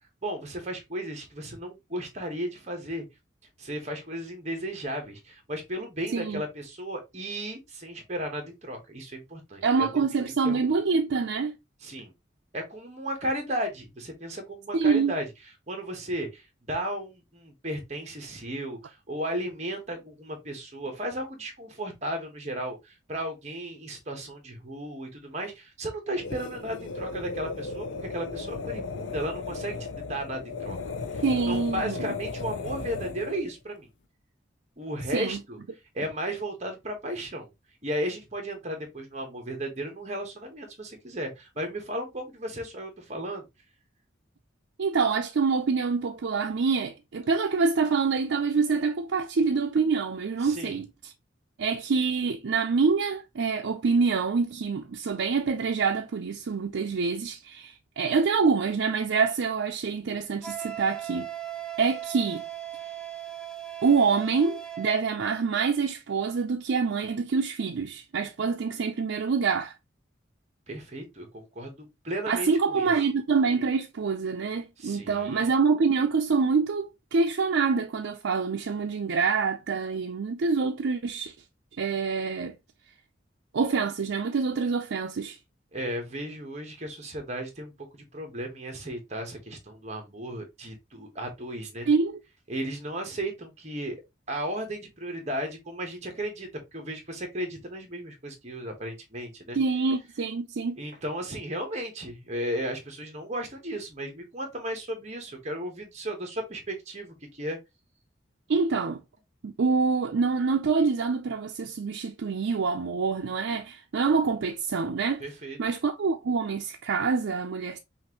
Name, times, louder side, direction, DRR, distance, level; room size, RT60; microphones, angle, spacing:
voice 1, 0.2-3.0 3.6-9.9 10.2-10.7 11.8-12.1 12.5-15.3 15.7-30.8 31.1-33.9 34.8-35.6 35.9-37.5 37.8-43.4 50.4-50.8 70.7-72.9 74.8-75.5 85.7-91.9 92.5-94.0 94.3-99.6 100.8-107.6 115.2-115.6, right 1 dB, 35° right, 1.2 m, -35 dB
voice 2, 9.6-11.6 14.7-15.1 31.2-32.1 35.1-35.4 44.8-50.9 51.6-61.3 61.8-62.4 63.8-69.7 72.3-81.3 81.8-82.5 83.5-85.4 91.9-92.2 99.5-100.8 108.5-109.0 109.4-115.2 115.6-117.8, right 5 dB, 75° right, 0.5 m, -26 dB
sound 1, 26.1-33.5, left 4 dB, 75° left, 0.6 m, -36 dB
Wind instrument woodwind instrument, 60.4-65.0, right 11 dB, 5° left, 0.5 m, -38 dB
5.7 x 2.5 x 2.9 m
head